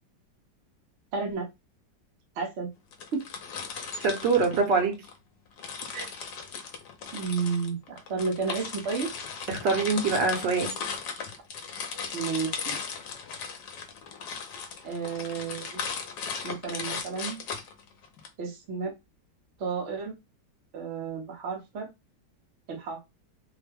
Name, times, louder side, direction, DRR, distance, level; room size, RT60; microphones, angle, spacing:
voice 1, 1.1-1.5 2.4-2.7 3.1-3.2 5.9-6.1 7.1-9.1 12.1-12.8 14.8-15.8 16.4-17.4 18.4-18.9 19.6-20.2 20.7-21.9 22.7-23.0, right 5 dB, 50° right, 1.1 m, -32 dB
sound 1, 2.9-5.2 5.6-18.3, left 6 dB, 70° left, 1.2 m, -37 dB
voice 2, 4.0-5.0 9.5-10.8, right 4 dB, 75° right, 1.4 m, -24 dB
3.4 x 2.1 x 3.3 m
omnidirectional pair, 1.9 m